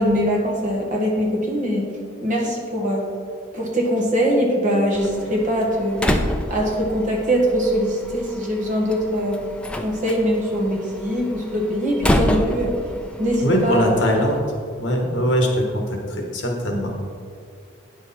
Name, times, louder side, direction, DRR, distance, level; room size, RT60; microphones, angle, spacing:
voice 1, 0.0-1.8 2.2-3.1 3.5-6.0 6.5-9.4 9.8-12.7 13.2-13.9, equal, 40° right, -2 dB, 1.5 m, -22 dB
Slam, 4.9-14.4, left 1 dB, 5° left, 0.4 m, -28 dB
voice 2, 13.4-14.5 14.8-16.0 16.3-16.9, equal, 60° left, 2 dB, 1.3 m, -21 dB
9.4 x 6.4 x 4.2 m, 2.3 s
head